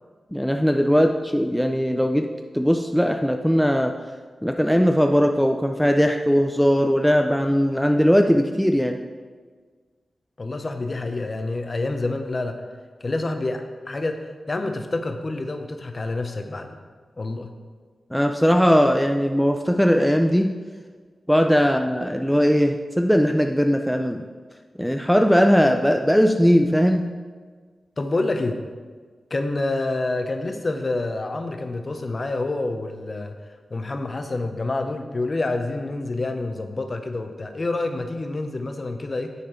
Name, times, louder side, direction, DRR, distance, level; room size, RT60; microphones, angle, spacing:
voice 1, 0.3-4.0 4.4-9.0 18.1-20.5 21.3-24.2 24.8-27.1, equal, ahead, 4 dB, 0.3 m, -19 dB
voice 2, 10.4-12.6 13.0-14.2 14.5-16.8 17.2-17.5 28.0-28.6 29.3-33.3 33.7-39.3, left 2 dB, 35° left, 6 dB, 0.6 m, -27 dB
9.3 x 4.2 x 4.4 m, 1.5 s
wide cardioid pair, 115°, 0 cm